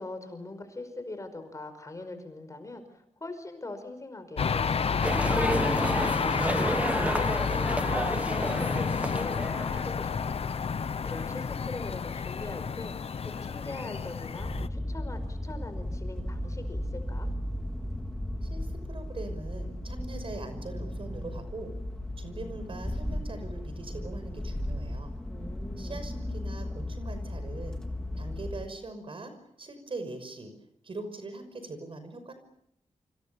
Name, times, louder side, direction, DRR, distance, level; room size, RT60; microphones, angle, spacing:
voice 1, 0.0-5.5 6.0-10.4 11.0-12.9 13.2-17.3 25.3-26.1, left 2 dB, 30° left, 9 dB, 5.2 m, -42 dB
sound 1, 4.4-14.7, left 6 dB, 60° left, 1.0 m, -30 dB
sound 2, 5.0-9.9, right 1 dB, 10° right, 1.2 m, -30 dB
sound 3, 14.4-28.6, left 1 dB, 5° left, 3.8 m, -35 dB
voice 2, 18.4-21.7 22.2-25.1 25.8-27.8 28.2-30.5 30.8-32.3, right 2 dB, 50° right, 9 dB, 5.8 m, -41 dB
29.0 x 26.0 x 7.1 m, 0.75 s
wide cardioid pair, 130°, 11 cm